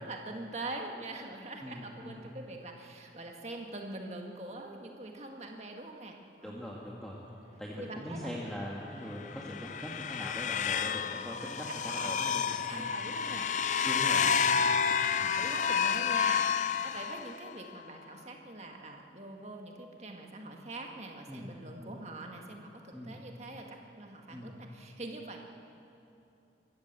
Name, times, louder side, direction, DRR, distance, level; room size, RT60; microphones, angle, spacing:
voice 1, 0.0-6.7 7.8-8.5 11.9-12.2 12.5-13.5 15.1-25.4, right 2 dB, 35° right, 2 dB, 1.8 m, -44 dB
voice 2, 1.6-2.2 6.4-7.2 7.6-13.0 13.8-14.8 15.2-15.4 21.3-21.5 21.8-21.9 22.9-23.2 24.3-24.5, equal, 5° left, -4 dB, 1.7 m, -42 dB
sound 1, 7.3-17.4, right 1 dB, 80° right, 3.2 m, -54 dB
sound 2, 9.2-17.5, left 6 dB, 40° left, 0.5 m, -30 dB
23.5 x 13.5 x 8.2 m, 2.8 s
head